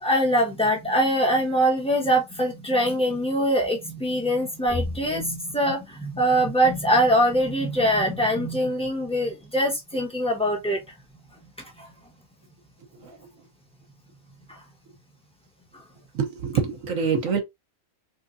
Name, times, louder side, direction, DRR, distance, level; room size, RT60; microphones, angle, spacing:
voice 1, 0.0-10.8 11.8-11.9 14.5-14.6, equal, 5° left, 1.1 m, -23 dB
voice 2, 16.1-17.4, right 6 dB, 70° right, 1.3 m, -25 dB
3.8 x 3.2 x 2.6 m
omnidirectional pair, 1.5 m